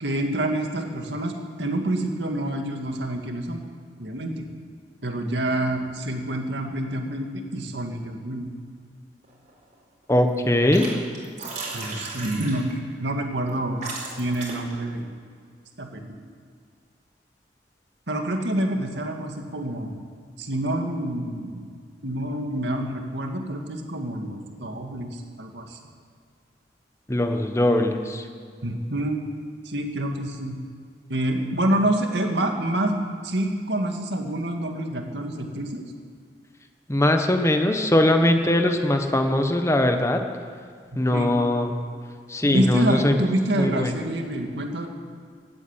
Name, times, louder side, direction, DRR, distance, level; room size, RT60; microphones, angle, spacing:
voice 1, 0.0-1.3 1.6-3.6 4.0-4.5 5.0-8.5 11.7-12.7 13.0-13.8 14.2-15.1 15.8-16.1 18.1-20.0 20.4-21.7 22.0-25.8 28.6-29.2 29.6-30.6 31.1-35.8 41.1-41.3 42.4-44.9, right 1 dB, 75° right, 3 dB, 2.0 m, -27 dB
sound 1, 9.2-9.7 10.0-10.9 11.1-12.8 13.5-13.6 13.8-14.7, right 3 dB, 45° right, 4.4 m, -35 dB
voice 2, 10.1-10.9 27.1-28.2 36.9-40.2 40.9-41.7 42.3-43.2 43.6-43.9, left 1 dB, 15° left, 5 dB, 1.2 m, -21 dB
16.5 x 9.0 x 8.9 m, 2.1 s
head